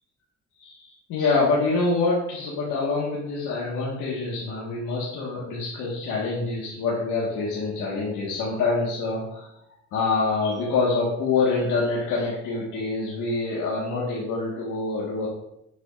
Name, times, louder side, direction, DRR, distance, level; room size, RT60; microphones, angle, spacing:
voice 1, 0.6-9.5 9.9-15.3, left 3 dB, 85° left, -6 dB, 1.7 m, -26 dB
7.3 x 6.8 x 2.5 m, 0.79 s
cardioid pair, 90°, 30 cm